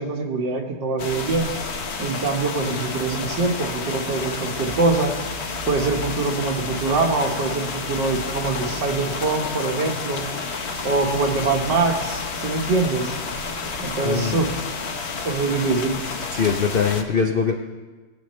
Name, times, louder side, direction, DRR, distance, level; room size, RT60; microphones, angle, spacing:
voice 1, 0.0-1.5 2.0-5.1 5.7-10.2 10.8-13.1 13.8-14.5 15.2-16.0, right 3 dB, 90° right, 2 dB, 1.9 m, -23 dB
sound 1, 1.0-17.0, left 4 dB, 50° left, 0.9 m, -30 dB
voice 2, 14.0-14.4 16.3-17.5, left 6 dB, 70° left, 3 dB, 0.5 m, -22 dB
20.0 x 8.4 x 3.2 m, 1.3 s
omnidirectional pair, 1.8 m